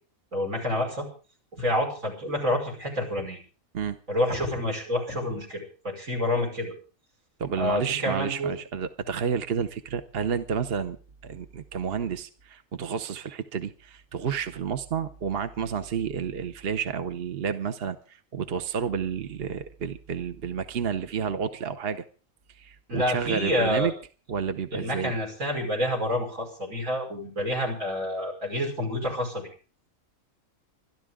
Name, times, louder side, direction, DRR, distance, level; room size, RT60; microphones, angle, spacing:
voice 1, 0.3-1.1 1.6-3.4 4.1-6.7 7.5-8.5 22.9-23.9 24.7-29.5, left 1 dB, 75° right, 2 dB, 6.0 m, -28 dB
voice 2, 7.4-11.0 11.2-22.0 22.5-23.9 24.3-25.1, right 7 dB, 50° right, 10 dB, 1.0 m, -30 dB
25.5 x 11.5 x 3.7 m, 0.38 s
omnidirectional pair, 1.4 m